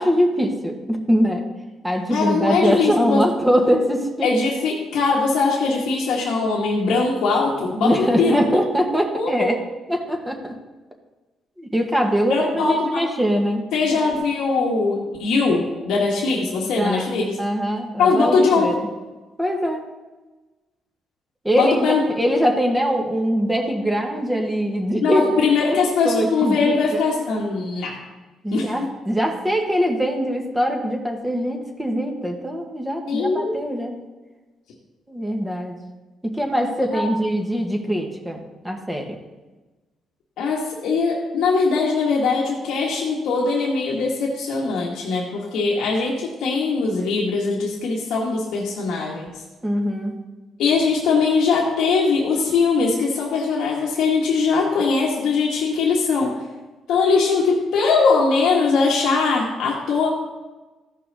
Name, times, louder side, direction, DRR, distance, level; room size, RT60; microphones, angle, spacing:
voice 1, 0.0-1.5 1.8-4.3 7.8-9.6 9.9-10.5 11.6-13.7 16.8-17.1 17.4-18.9 19.4-19.9 21.4-25.2 26.0-27.0 28.4-34.0 35.1-35.8 36.2-39.2 49.6-50.2, equal, 10° right, 2 dB, 1.6 m, -22 dB
voice 2, 2.1-3.2 4.2-8.4 9.1-9.5 12.3-13.0 13.7-17.3 18.0-18.7 21.5-22.0 25.0-28.0 28.5-28.7 33.1-33.6 36.9-37.1 40.4-49.3 50.6-56.4 56.9-60.1, left 4 dB, 85° left, -3 dB, 1.5 m, -21 dB
14.5 x 5.7 x 4.0 m, 1.2 s
cardioid pair, 90°, 0 cm